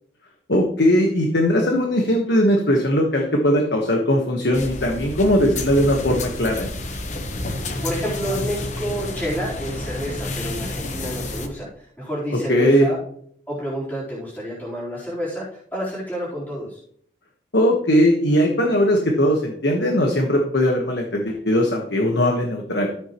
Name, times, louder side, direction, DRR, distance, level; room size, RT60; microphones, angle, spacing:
voice 1, 0.5-6.7 12.5-12.9 17.5-22.9, equal, 70° left, 1 dB, 1.3 m, -19 dB
sound 1, 4.5-11.5, left 1 dB, 40° left, 1.1 m, -30 dB
voice 2, 7.8-13.0 13.5-16.8, equal, 10° left, -9 dB, 4.0 m, -29 dB
13.0 x 8.0 x 3.1 m, 0.64 s
head